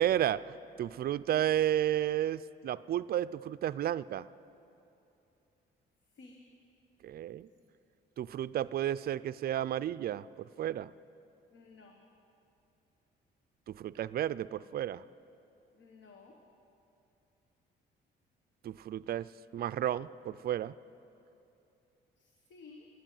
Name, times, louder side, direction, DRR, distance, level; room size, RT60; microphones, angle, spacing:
voice 1, 0.0-4.3 7.0-7.5 8.2-10.3 10.6-10.9 13.7-15.0 18.6-20.7, right 11 dB, 50° right, 16 dB, 0.4 m, -32 dB
voice 2, 11.5-12.0 15.7-16.4 22.2-22.9, left 4 dB, 65° left, 2 dB, 1.3 m, -55 dB
12.0 x 10.0 x 9.1 m, 2.8 s
cardioid pair, 90°, 20 cm